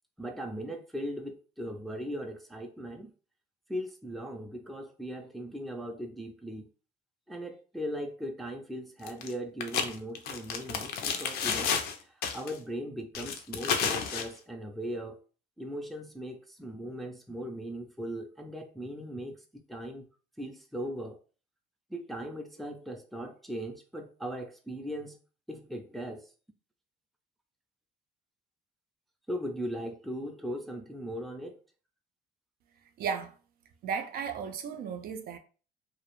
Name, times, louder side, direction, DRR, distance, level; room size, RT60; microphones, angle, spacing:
voice 1, 0.2-3.1 3.7-6.7 7.3-15.2 15.6-20.1 20.4-21.2 21.9-25.2 25.5-26.3 29.3-31.6, equal, ahead, 0.4 m, -39 dB
sound 1, 9.1-9.3 9.6-12.0 12.2-12.6 13.1-14.3, left 6 dB, 65° left, 0.5 m, -31 dB
voice 2, 33.0-33.3 33.8-35.4, right 6 dB, 60° right, 0.4 m, -34 dB
2.3 x 2.0 x 3.0 m
cardioid pair, 110°, 17 cm